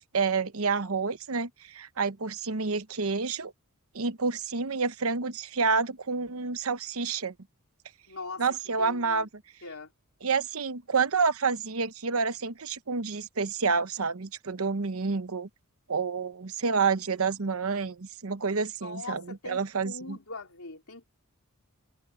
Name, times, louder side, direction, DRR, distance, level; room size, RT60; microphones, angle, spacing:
voice 1, 0.0-3.5 3.9-7.3 8.4-9.3 10.2-15.5 15.9-20.2, right 5 dB, 70° right, 0.9 m, -29 dB
voice 2, 8.1-9.3 9.6-9.9 18.8-21.1, left 3 dB, 75° left, 4.1 m, -42 dB
head